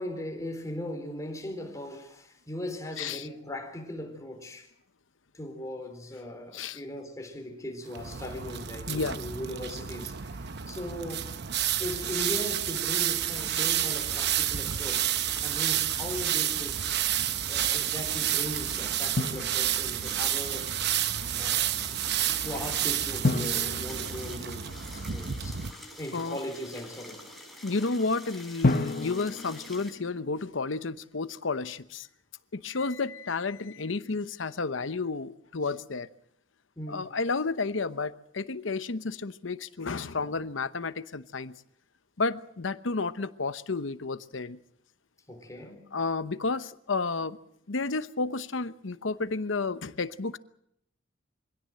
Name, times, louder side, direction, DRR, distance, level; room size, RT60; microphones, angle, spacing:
voice 1, 0.0-4.7 5.3-11.3 11.8-15.1 15.4-16.8 17.5-20.7 21.4-21.8 22.2-25.6 26.0-27.3 36.8-37.0 45.3-45.9, left 1 dB, 15° left, 4.0 m, -39 dB
voice 2, 3.0-3.3 6.5-6.8 8.9-9.2 11.6-11.8 25.7-25.8 26.1-26.4 27.6-32.1 32.5-36.1 36.9-41.6 42.2-44.6 45.9-47.4 47.7-50.4, left 3 dB, 75° left, 0.9 m, -31 dB
sound 1, 7.9-25.7, right 11 dB, 60° right, 0.8 m, -30 dB
sound 2, 13.2-29.9, left 1 dB, ahead, 7.3 m, -47 dB
Drum, 19.2-20.2 23.2-25.1 28.6-30.6, left 2 dB, 50° left, 1.2 m, -31 dB
24.5 x 17.0 x 7.6 m
head